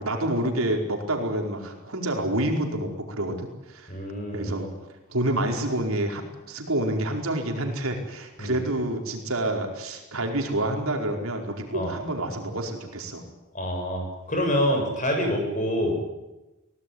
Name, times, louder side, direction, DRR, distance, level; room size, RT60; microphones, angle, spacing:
voice 1, 0.0-3.9 4.3-4.7 5.1-6.2 6.5-13.2 15.8-15.9, right 1 dB, 75° right, 2 dB, 4.9 m, -28 dB
voice 2, 3.9-4.5 8.4-8.6 11.7-11.9 13.5-16.0, equal, 35° left, 3 dB, 7.2 m, -26 dB
23.5 x 18.5 x 9.6 m, 1.0 s
head